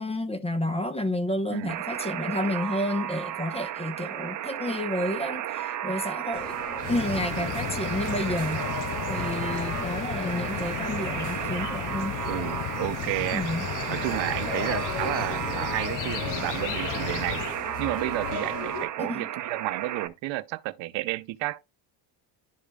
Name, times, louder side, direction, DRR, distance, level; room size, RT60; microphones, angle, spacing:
voice 1, 0.0-6.5 6.9-8.6 9.1-12.2 13.3-13.7 19.0-19.3, left 1 dB, 15° left, 0.9 m, -30 dB
Alarm, 1.7-20.1, right 11 dB, 45° right, 0.7 m, -34 dB
sound 1, 6.3-18.9, left 4 dB, 75° left, 3.1 m, -39 dB
sound 2, 6.8-17.6, left 13 dB, 50° left, 0.5 m, -34 dB
voice 2, 7.1-7.5 12.3-13.4 13.9-21.6, right 18 dB, 85° right, 0.7 m, -32 dB
11.5 x 4.9 x 2.3 m
cardioid pair, 115°, 44 cm